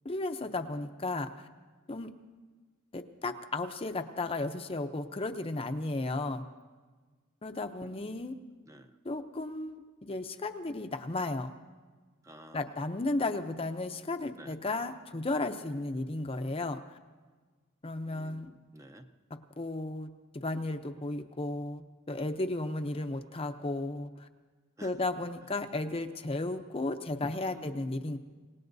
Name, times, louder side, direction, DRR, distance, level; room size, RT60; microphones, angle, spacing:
voice 1, 0.0-1.5 1.9-2.1 2.9-6.4 7.4-8.3 9.0-11.5 12.5-17.0 17.8-18.6 19.6-24.3 24.8-28.2, left 2 dB, 25° left, 7 dB, 0.6 m, -34 dB
voice 2, 7.8-8.3 8.7-9.0 12.2-12.7 14.3-14.6 18.0-19.1 24.8-25.0 25.4-25.5 27.5-27.9, right 1 dB, 15° right, 6 dB, 0.6 m, -52 dB
27.0 x 18.0 x 2.7 m, 1.4 s
head